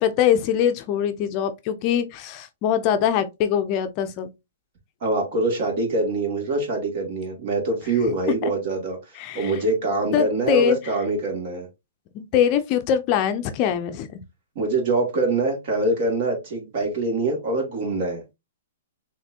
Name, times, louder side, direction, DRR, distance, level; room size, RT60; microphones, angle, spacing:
voice 1, 0.0-4.3 8.0-8.2 8.4-8.5 9.1-9.6 10.1-10.9 12.1-14.2, left 9 dB, 35° left, 0.5 m, -23 dB
voice 2, 5.0-9.0 9.3-11.7 14.6-18.2, right 2 dB, 50° right, 2.5 m, -24 dB
5.8 x 3.2 x 2.8 m
hypercardioid pair, 150°, 0 cm